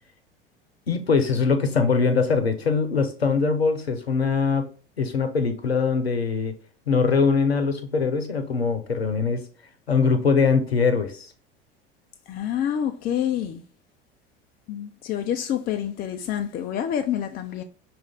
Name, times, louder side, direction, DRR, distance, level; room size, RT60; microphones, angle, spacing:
voice 1, 0.9-4.7 5.0-6.5 6.9-9.4 9.9-11.3, left 5 dB, 85° left, 0.7 m, -22 dB
voice 2, 12.3-13.6 14.7-17.6, left 10 dB, 30° left, 0.5 m, -27 dB
6.1 x 2.5 x 3.4 m
figure-of-eight pair, 70°, 30 cm